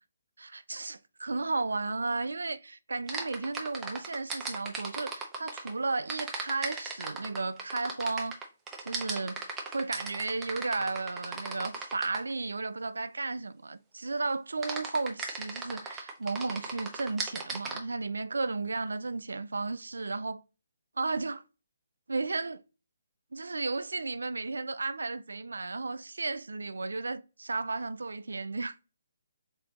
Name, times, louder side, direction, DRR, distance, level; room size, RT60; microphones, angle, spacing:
voice 1, 0.4-8.4 8.8-9.4 9.7-20.4 21.0-21.4 22.1-22.6 23.3-28.7, right 3 dB, 85° right, 0.3 m, -34 dB
sound 1, 3.1-5.7 6.1-12.3 14.6-17.8, right 4 dB, 10° right, 0.7 m, -36 dB
4.2 x 3.7 x 2.9 m
hypercardioid pair, 150°, 0 cm